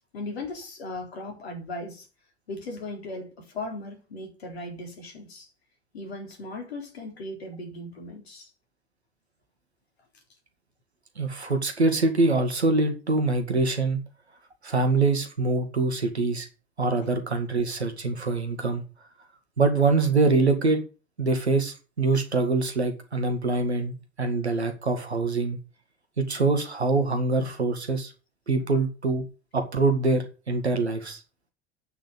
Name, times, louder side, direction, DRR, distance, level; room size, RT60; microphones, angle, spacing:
voice 1, 0.1-2.1 2.5-5.5 5.9-8.5 10.1-10.2, left 2 dB, 75° left, 4.0 m, -37 dB
voice 2, 11.2-14.0 14.6-16.5 16.8-18.8 19.6-20.8 21.2-25.6 26.2-28.1 28.5-29.2 29.5-31.2, right 3 dB, 85° right, 2.0 m, -24 dB
9.2 x 6.6 x 8.2 m
figure-of-eight pair, 65°, 32 cm